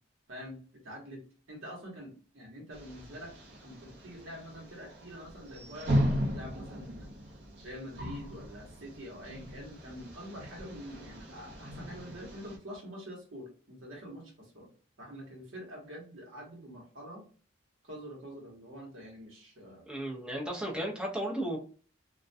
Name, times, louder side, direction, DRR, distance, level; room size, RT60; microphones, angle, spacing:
voice 1, 0.3-3.3 3.6-7.1 7.6-14.7 15.0-17.2 17.8-19.8, equal, 80° right, -1 dB, 1.0 m, -46 dB
sound 1, 2.7-12.6, equal, 55° right, 0.6 m, -37 dB
voice 2, 19.9-21.6, right 1 dB, 5° right, -2 dB, 0.5 m, -34 dB
2.3 x 2.1 x 2.5 m, 0.41 s
head